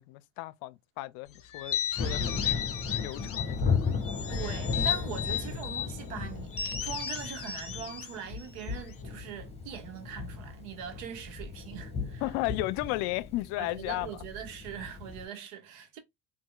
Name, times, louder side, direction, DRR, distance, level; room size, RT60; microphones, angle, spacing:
voice 1, 0.0-2.6 3.0-3.6 8.7-8.8 12.2-14.2, left 18 dB, 70° left, 0.5 m, -34 dB
sound 1, 1.5-3.6 4.0-5.9 6.5-9.0, left 9 dB, 35° left, 1.1 m, -34 dB
Thunder, 2.0-15.3, left 5 dB, 15° left, 1.5 m, -35 dB
voice 2, 4.3-12.2 13.6-16.0, right 8 dB, 85° right, 1.4 m, -42 dB
5.3 x 2.7 x 2.3 m
supercardioid pair, 110°, 37 cm